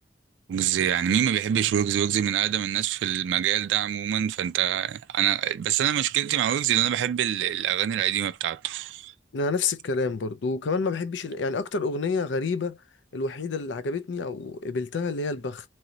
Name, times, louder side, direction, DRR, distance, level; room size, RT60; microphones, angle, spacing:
voice 1, 0.5-9.1, right 10 dB, 85° right, 0.3 m, -25 dB
voice 2, 9.3-12.8 13.1-15.6, left 4 dB, 85° left, 0.5 m, -28 dB
3.0 x 2.7 x 2.8 m
head